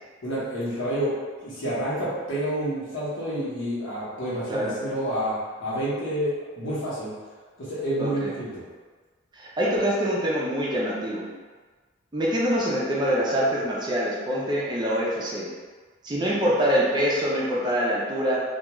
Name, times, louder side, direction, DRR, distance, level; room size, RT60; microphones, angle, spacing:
voice 1, 0.2-1.1 1.4-7.1 7.6-8.6, right 1 dB, 80° left, -8 dB, 1.0 m, -29 dB
voice 2, 8.0-8.3 9.4-11.3 12.1-15.5 16.0-18.4, equal, 25° right, -5 dB, 0.5 m, -25 dB
2.3 x 2.3 x 2.9 m, 1.4 s
head